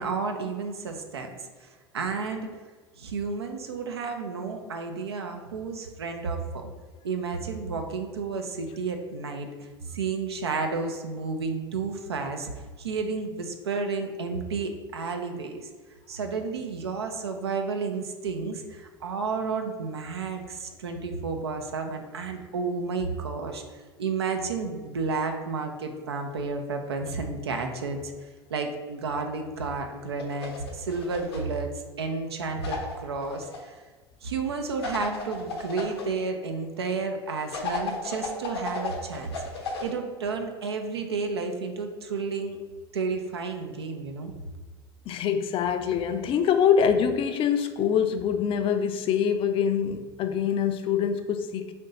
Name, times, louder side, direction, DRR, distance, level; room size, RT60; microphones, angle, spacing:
voice 1, 0.0-1.3 1.6-2.5 3.0-6.7 7.0-12.5 12.8-15.7 16.1-23.6 24.0-31.7 32.0-33.8 34.2-39.3 39.8-42.6 42.9-44.3, right 4 dB, 85° right, 5 dB, 0.5 m, -31 dB
sound 1, 30.2-31.6 32.6-33.6 34.8-36.0 37.5-39.9, left 4 dB, 80° left, 0.8 m, -34 dB
voice 2, 45.1-51.7, left 7 dB, 45° left, 7 dB, 0.4 m, -24 dB
3.5 x 2.7 x 4.0 m, 1.4 s
hypercardioid pair, 75°, 13 cm